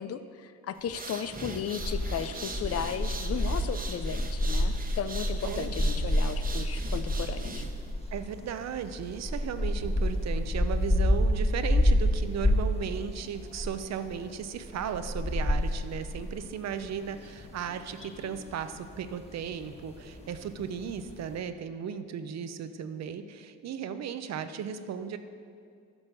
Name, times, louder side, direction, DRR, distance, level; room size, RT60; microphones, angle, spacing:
voice 1, 0.0-7.7, left 8 dB, 55° left, 12 dB, 0.5 m, -35 dB
sound 1, 0.8-7.9, right 3 dB, 30° right, 1.0 m, -41 dB
sound 2, 1.8-21.4, left 1 dB, 20° left, 1.4 m, -29 dB
voice 2, 5.4-5.7 8.1-25.2, right 7 dB, 60° right, 10 dB, 0.7 m, -36 dB
10.5 x 5.6 x 6.7 m, 2.3 s
cardioid pair, 90°, 30 cm